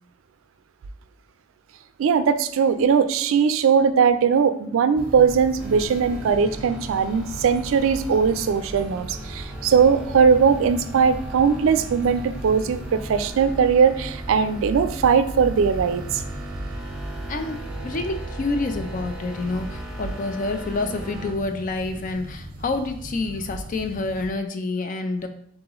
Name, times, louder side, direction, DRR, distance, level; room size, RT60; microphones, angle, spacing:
voice 1, 2.0-16.2, right 6 dB, 85° right, 0.3 m, -20 dB
sound 1, 4.9-24.3, right 1 dB, 50° right, 0.6 m, -37 dB
sound 2, 5.6-21.3, right 1 dB, 5° right, 0.7 m, -38 dB
voice 2, 17.3-25.3, left 3 dB, 40° left, 0.4 m, -28 dB
3.8 x 2.9 x 3.8 m
head